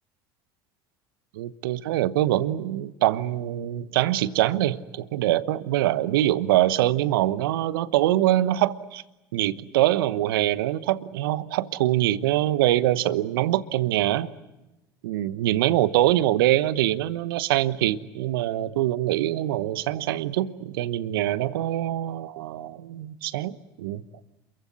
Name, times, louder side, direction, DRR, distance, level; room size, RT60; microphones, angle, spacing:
voice 1, 1.3-9.0 9.3-14.3 15.0-24.0, right 14 dB, 75° right, 15 dB, 1.1 m, -24 dB
27.5 x 23.0 x 8.3 m, 1.0 s
hypercardioid pair, 70°, 12 cm